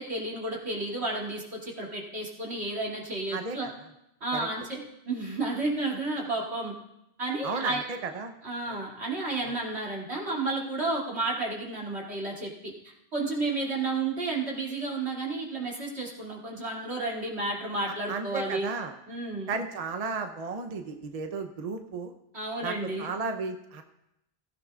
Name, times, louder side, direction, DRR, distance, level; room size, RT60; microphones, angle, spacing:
voice 1, 0.0-3.7 4.2-6.7 7.2-7.8 8.4-18.7 19.1-19.5 22.3-23.1, right 2 dB, 80° right, -3 dB, 3.0 m, -32 dB
voice 2, 3.3-3.7 4.3-4.5 7.4-8.3 8.7-8.8 9.4-9.6 18.1-18.9 19.5-22.1 22.6-23.8, right 4 dB, 40° right, 6 dB, 0.8 m, -34 dB
16.5 x 15.5 x 2.4 m, 0.85 s
omnidirectional pair, 1.1 m